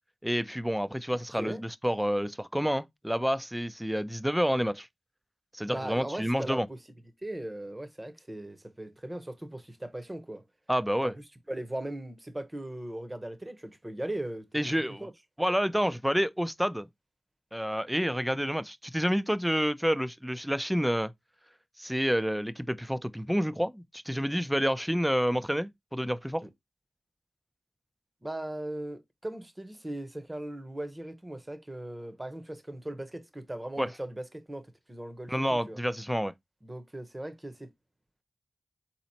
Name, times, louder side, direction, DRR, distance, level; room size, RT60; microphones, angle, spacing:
voice 1, 0.2-4.9 5.5-6.7 10.7-11.1 14.5-15.0 15.4-16.9 17.5-21.1 21.8-26.4 33.8-33.9 35.3-36.3, equal, 5° right, 0.5 m, -29 dB
voice 2, 5.7-6.8 7.2-10.5 11.0-11.1 11.5-14.7 15.0-15.1 26.4-26.5 28.2-35.8 36.6-37.7, right 1 dB, 20° right, 0.9 m, -38 dB
4.0 x 2.9 x 4.1 m
cardioid pair, 50°, 0 cm